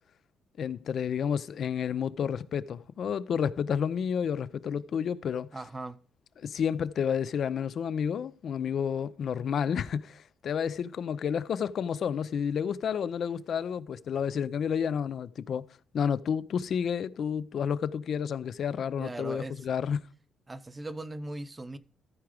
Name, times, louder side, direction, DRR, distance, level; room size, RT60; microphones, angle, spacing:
voice 1, 0.6-5.5 6.4-15.7 15.9-20.0, left 7 dB, 60° left, 0.5 m, -30 dB
voice 2, 5.5-6.0 19.0-19.7 20.5-21.8, right 2 dB, 20° right, 0.7 m, -39 dB
14.0 x 4.8 x 4.9 m
cardioid pair, 90°, 0 cm